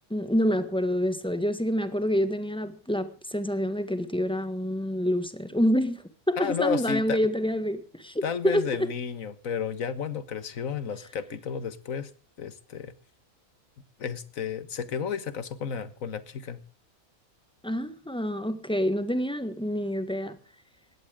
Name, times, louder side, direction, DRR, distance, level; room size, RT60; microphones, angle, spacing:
voice 1, 0.1-8.9 17.6-20.4, equal, 5° left, 1.5 m, -27 dB
voice 2, 6.4-7.2 8.2-12.1 12.4-12.9 14.0-16.6, left 7 dB, 70° left, 1.7 m, -32 dB
20.5 x 16.5 x 3.6 m
omnidirectional pair, 1.5 m